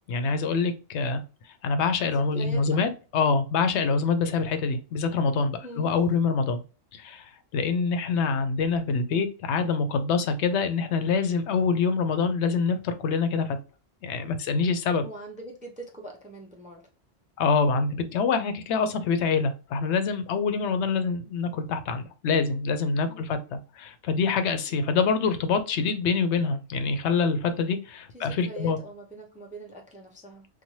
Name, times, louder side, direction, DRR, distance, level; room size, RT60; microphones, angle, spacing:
voice 1, 0.1-1.2 1.6-6.6 6.9-7.3 7.5-13.6 14.0-15.0 17.4-28.8, left 5 dB, 85° left, 0.9 m, -25 dB
voice 2, 2.1-2.8 5.6-6.0 15.0-16.9 23.1-23.3 28.1-30.5, right 1 dB, 10° right, 0.4 m, -42 dB
3.0 x 2.2 x 2.6 m
omnidirectional pair, 1.1 m